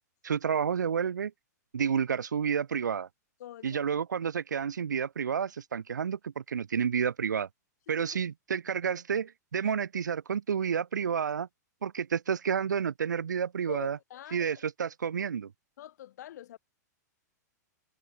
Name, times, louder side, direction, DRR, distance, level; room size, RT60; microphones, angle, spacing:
voice 1, 0.2-1.3 1.7-3.1 3.6-7.5 7.9-11.5 11.8-14.0 14.3-15.5, right 7 dB, 90° right, 0.6 m, -30 dB
voice 2, 3.4-3.9 8.0-8.2 9.6-9.8 13.7-14.7 15.8-16.6, left 12 dB, 65° left, 1.7 m, -45 dB
hypercardioid pair, 120°, 10 cm